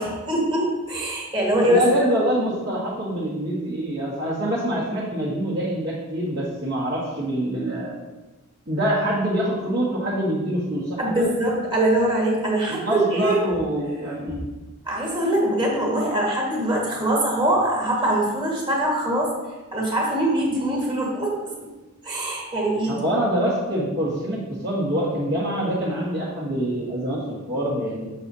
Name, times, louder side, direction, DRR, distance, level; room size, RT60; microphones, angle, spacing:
voice 1, 0.0-1.8 11.0-13.4 14.8-19.3 19.7-21.5 22.0-23.0, right 1 dB, 25° right, -3 dB, 1.7 m, -23 dB
voice 2, 1.6-8.0 8.7-11.3 12.7-14.4 22.9-28.1, right 1 dB, 50° right, -11 dB, 1.7 m, -25 dB
6.9 x 6.2 x 2.8 m, 1.1 s
head